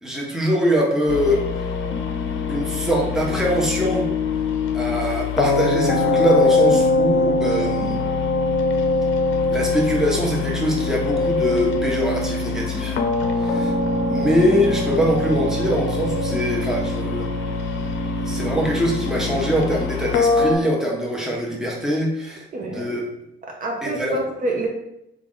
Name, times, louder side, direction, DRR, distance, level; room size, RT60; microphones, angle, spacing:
voice 1, 0.0-1.4 2.5-4.1 4.7-8.0 9.5-13.0 13.4-13.7 14.1-17.3 18.2-23.0 23.8-24.2, equal, 5° right, -2 dB, 0.9 m, -23 dB
sound 1, 1.1-20.5, left 3 dB, 75° left, 0.5 m, -22 dB
voice 2, 22.5-22.9 23.4-24.7, right 2 dB, 45° right, 0 dB, 0.7 m, -27 dB
3.4 x 2.4 x 3.8 m, 0.82 s
cardioid pair, 90°, 20 cm